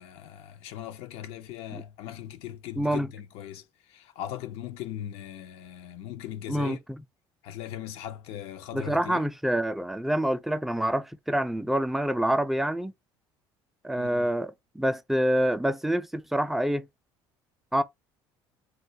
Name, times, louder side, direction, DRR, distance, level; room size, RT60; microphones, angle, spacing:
voice 1, 0.0-6.8 7.4-9.2 14.0-14.3, left 11 dB, 75° left, 0.5 m, -39 dB
voice 2, 2.8-3.1 6.5-7.0 8.7-12.9 13.8-16.9 17.7-17.8, right 1 dB, ahead, 0.3 m, -27 dB
2.2 x 2.1 x 2.7 m
supercardioid pair, 95°, 10 cm